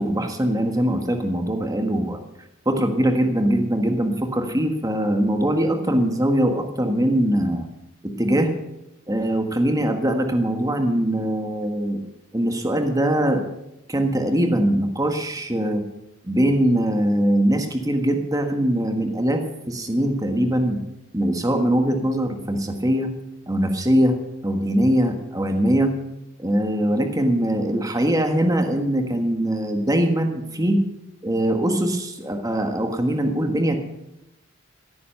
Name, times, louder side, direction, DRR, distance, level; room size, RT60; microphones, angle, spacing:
voice 1, 0.0-2.2 2.6-7.6 8.0-8.5 9.1-12.1 12.3-13.4 13.9-15.8 16.2-20.8 21.1-23.1 23.5-24.2 24.4-25.9 26.4-30.8 31.2-33.8, right 1 dB, 15° right, 5 dB, 1.6 m, -22 dB
16.5 x 9.6 x 6.7 m, 0.91 s
head